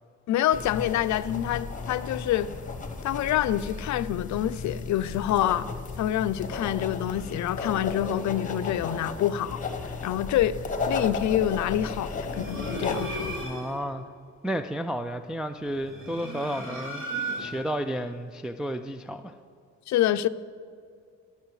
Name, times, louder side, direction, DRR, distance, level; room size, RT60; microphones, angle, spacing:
voice 1, 0.3-2.5 3.0-5.7 6.0-10.6 10.9-13.4 19.9-20.3, left 12 dB, 70° left, 0.5 m, -27 dB
sound 1, 0.5-13.4, left 4 dB, 25° left, 1.1 m, -34 dB
sound 2, 12.2-13.8 15.7-17.7, right 1 dB, 45° right, 2.2 m, -35 dB
voice 2, 13.4-14.0 14.4-17.0 17.4-19.3, equal, ahead, 0.3 m, -32 dB
18.5 x 6.8 x 3.2 m
cardioid pair, 90°, 30 cm